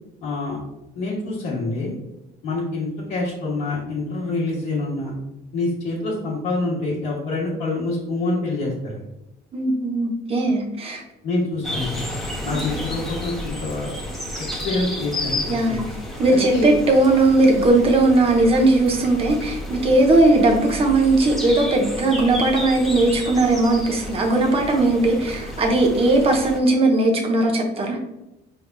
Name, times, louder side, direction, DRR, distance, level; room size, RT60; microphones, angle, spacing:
voice 1, 0.2-0.6 0.9-1.9 2.4-5.1 5.5-9.0 11.2-12.0 12.4-13.9 14.6-15.8 16.3-16.7, left 2 dB, 75° left, -9 dB, 1.4 m, -26 dB
voice 2, 9.5-11.0 12.5-12.6 15.5-15.8 16.2-28.0, right 2 dB, 35° right, 1 dB, 0.9 m, -18 dB
sound 1, 11.6-26.6, left 1 dB, ahead, 0.9 m, -32 dB
5.0 x 3.5 x 2.3 m, 0.92 s
cardioid pair, 110°, 17 cm